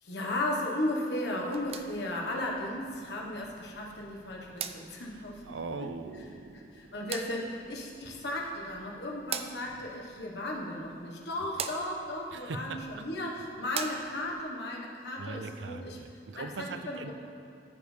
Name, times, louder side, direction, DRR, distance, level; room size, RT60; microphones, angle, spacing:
voice 1, 0.0-5.9 6.7-16.0 16.3-17.1, left 1 dB, 70° left, -2 dB, 1.2 m, -35 dB
sound 1, 1.4-14.4, right 7 dB, 35° right, 0.3 m, -44 dB
voice 2, 5.1-6.7 12.3-12.8 15.2-17.1, right 3 dB, 90° right, 9 dB, 0.5 m, -40 dB
14.0 x 5.2 x 3.3 m, 2.5 s
head